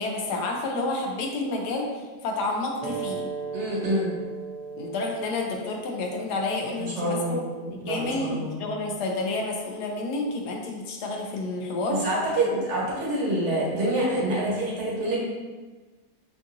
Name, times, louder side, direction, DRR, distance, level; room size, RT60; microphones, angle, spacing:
voice 1, 0.0-3.3 4.7-7.4 7.9-12.0 12.5-12.6, left 2 dB, 80° left, 1 dB, 1.2 m, -30 dB
sound 1, 2.8-7.9, right 5 dB, 70° right, 0.4 m, -38 dB
voice 2, 3.5-4.1 6.8-7.4 7.7-8.5 11.9-15.2, right 1 dB, 50° right, -5 dB, 1.3 m, -26 dB
5.3 x 2.6 x 2.5 m, 1.3 s
omnidirectional pair, 1.8 m